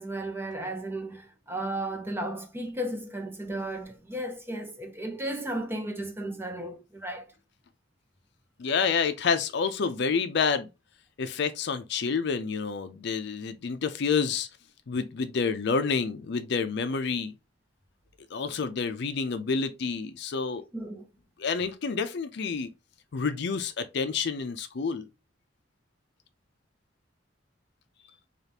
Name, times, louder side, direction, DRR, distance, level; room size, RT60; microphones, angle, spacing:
voice 1, 0.0-7.3 20.7-21.1, right 1 dB, 10° right, 0.7 m, -34 dB
voice 2, 8.6-10.7 11.2-14.5 14.9-17.3 18.3-20.6 21.4-22.7 23.1-25.0, left 5 dB, 65° left, 0.5 m, -28 dB
4.9 x 2.4 x 2.8 m
head